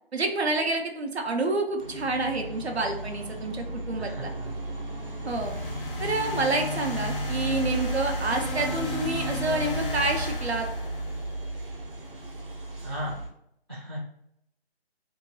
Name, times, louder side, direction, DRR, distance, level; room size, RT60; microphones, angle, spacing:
voice 1, 0.1-4.3 5.2-5.6 6.0-10.7, right 2 dB, 80° right, 3 dB, 0.7 m, -28 dB
sound 1, 1.8-13.3, right 2 dB, 60° right, 1.0 m, -34 dB
voice 2, 4.0-4.7 12.8-13.2 13.7-14.0, equal, 25° right, -9 dB, 0.5 m, -36 dB
sound 2, 5.3-11.4, left 1 dB, 60° left, 0.7 m, -35 dB
2.9 x 2.7 x 2.7 m, 0.75 s
figure-of-eight pair, 160°, 31 cm